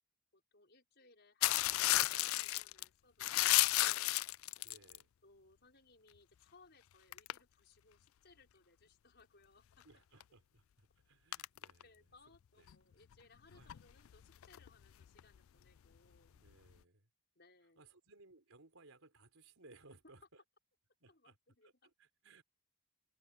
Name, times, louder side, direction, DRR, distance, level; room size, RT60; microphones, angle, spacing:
voice 1, 0.3-4.3 5.2-9.8 11.8-16.4 17.3-17.9 21.1-21.9, left 3 dB, 50° left, 6.3 m, -66 dB
sound 1, 1.4-2.9 3.2-5.0 7.1-7.4 10.2-10.3 11.3-11.8 12.7-12.8 13.1-13.2 13.5-15.4 16.5-16.6, left 17 dB, 80° left, 0.4 m, -32 dB
voice 2, 4.6-5.1 9.8-11.9 12.6-12.7 13.5-13.7 16.3-17.1 17.8-20.4 21.0-21.4 21.6-22.4, right 2 dB, 85° right, 4.0 m, -63 dB
open air
head